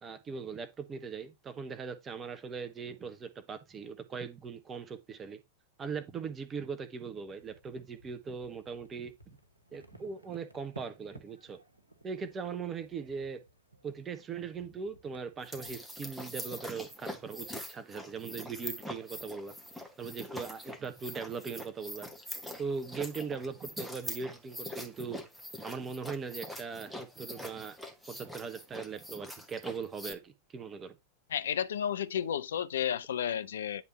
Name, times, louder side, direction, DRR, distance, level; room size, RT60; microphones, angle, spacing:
voice 1, 0.0-5.4 5.8-9.1 9.7-11.6 12.0-13.4 13.8-19.6 20.0-22.1 22.6-25.2 25.6-27.8 28.1-31.0, right 5 dB, 20° right, 0.8 m, -40 dB
sound 1, 7.4-15.8, right 2 dB, 85° right, 1.2 m, -57 dB
sound 2, 15.4-30.1, left 1 dB, ahead, 1.2 m, -44 dB
voice 2, 31.3-33.8, left 9 dB, 65° left, 0.5 m, -32 dB
9.6 x 3.5 x 4.1 m
figure-of-eight pair, 90°, 0 cm